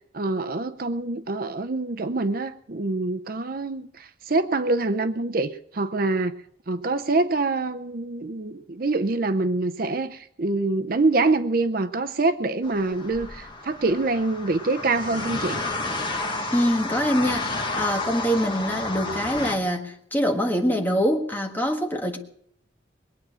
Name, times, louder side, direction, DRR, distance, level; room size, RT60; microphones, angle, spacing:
voice 1, 0.1-6.4 6.7-15.6, right 3 dB, 50° right, 0.6 m, -25 dB
sound 1, 12.6-19.6, left 2 dB, 25° left, 1.6 m, -31 dB
voice 2, 16.5-22.2, equal, 10° left, 1.6 m, -24 dB
22.0 x 8.9 x 6.3 m
head